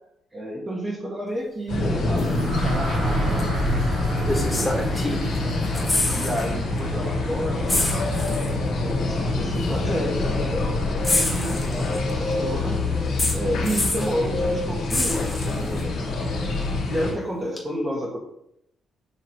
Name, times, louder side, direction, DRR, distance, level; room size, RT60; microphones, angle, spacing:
voice 1, 0.3-3.6 4.4-5.6 6.1-7.7 8.8-12.8 13.3-16.0 16.9-18.2, equal, 30° right, -3 dB, 1.4 m, -31 dB
sound 1, 1.7-17.1, left 2 dB, 80° left, 2.3 m, -25 dB
sound 2, 2.2-10.1, right 5 dB, 50° right, 1.7 m, -34 dB
sound 3, 3.4-3.5 4.3-5.4 5.6-6.5 6.8-6.9 7.7-8.5 9.6-9.7 11.0-12.1 13.2-14.1 14.9-15.8 17.6-17.7, left 2 dB, 15° left, 1.6 m, -26 dB
7.3 x 3.0 x 4.3 m, 0.77 s
cardioid pair, 90°, 0 cm